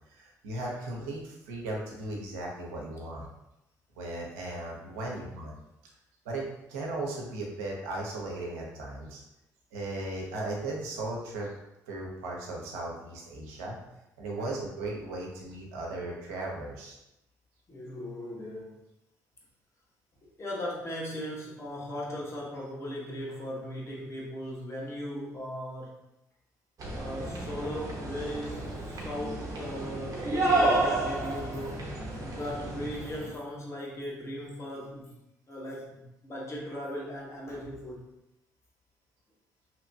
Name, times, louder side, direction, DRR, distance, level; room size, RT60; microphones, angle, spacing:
voice 1, 0.1-3.3 4.0-5.5 6.2-6.4 6.7-9.2 9.7-11.5 11.9-13.8 14.2-17.0, right 2 dB, 90° right, -2 dB, 0.5 m, -36 dB
voice 2, 17.7-18.8 20.4-26.0 26.9-35.1 35.5-38.0, equal, 35° left, -3 dB, 0.9 m, -38 dB
sound 1, 26.8-33.3, right 2 dB, 50° right, 0.8 m, -31 dB
2.7 x 2.1 x 2.6 m, 0.89 s
hypercardioid pair, 50°, 8 cm